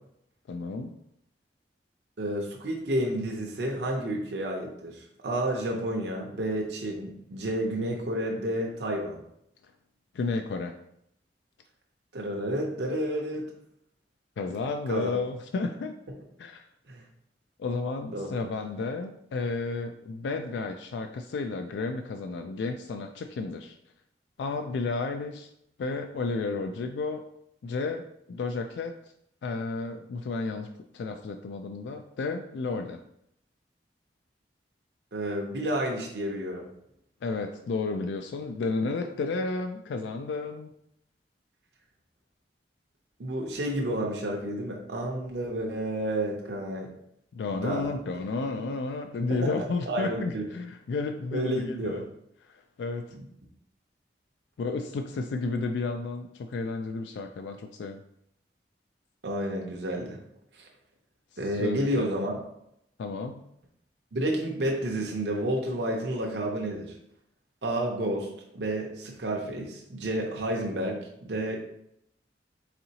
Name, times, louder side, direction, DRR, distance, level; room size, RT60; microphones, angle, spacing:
voice 1, 0.5-1.0 10.1-10.8 14.4-15.9 16.4-16.6 17.6-23.8 24.4-25.5 25.8-27.2 27.6-29.0 29.4-30.7 30.9-33.0 37.2-40.7 47.3-52.0 52.5-53.2 54.6-58.0 61.5-62.1 63.0-63.4, left 3 dB, 80° left, 5 dB, 0.3 m, -32 dB
voice 2, 2.2-9.2 12.1-13.5 14.9-15.1 16.9-17.0 18.1-18.3 35.1-36.7 43.2-46.9 47.5-48.0 49.3-49.5 49.9-50.4 51.3-52.0 59.2-60.2 60.6-60.7 61.4-62.3 64.1-66.9 67.6-71.6, right 1 dB, 70° right, 0 dB, 0.7 m, -30 dB
4.1 x 3.7 x 2.8 m, 0.76 s
head